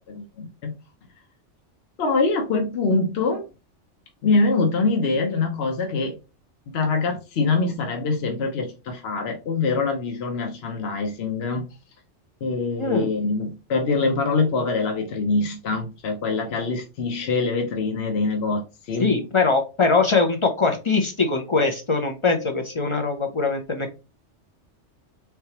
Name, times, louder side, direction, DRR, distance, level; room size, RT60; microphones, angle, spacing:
voice 1, 0.1-0.7 2.0-3.5 4.2-6.2 6.7-11.7 12.4-19.1, left 3 dB, 60° left, 1.0 m, -24 dB
voice 2, 12.8-13.1 19.0-24.0, left 4 dB, 40° left, 0.5 m, -22 dB
4.5 x 3.4 x 2.9 m
omnidirectional pair, 1.2 m